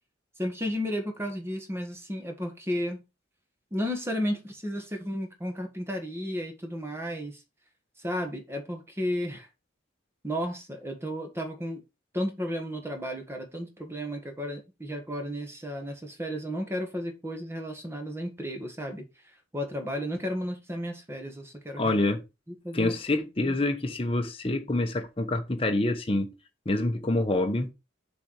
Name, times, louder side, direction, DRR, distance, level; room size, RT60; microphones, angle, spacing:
voice 1, 0.4-3.0 3.7-7.4 8.0-9.5 10.2-11.8 12.1-19.0 19.5-22.0 22.5-22.9 23.4-23.6, equal, 15° right, 1.6 m, -33 dB
voice 2, 21.8-22.2 22.7-26.3 26.6-27.7, left 2 dB, 30° left, 1.0 m, -26 dB
7.0 x 4.1 x 4.8 m
head